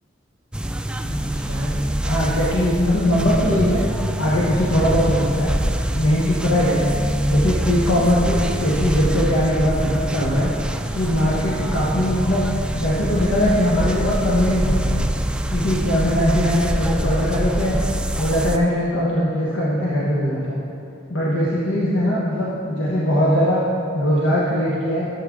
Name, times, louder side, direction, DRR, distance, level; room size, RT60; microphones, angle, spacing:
sound 1, 0.5-18.6, right 1 dB, 5° right, 0.3 m, -25 dB
voice 1, 1.0-1.8 2.0-3.8 4.2-5.5 5.9-6.8 7.2-10.5 10.9-15.0 15.5-17.8 18.2-20.6 21.1-23.6 23.9-25.1, equal, 80° left, -7 dB, 1.3 m, -20 dB
12.0 x 7.7 x 3.8 m, 2.7 s
head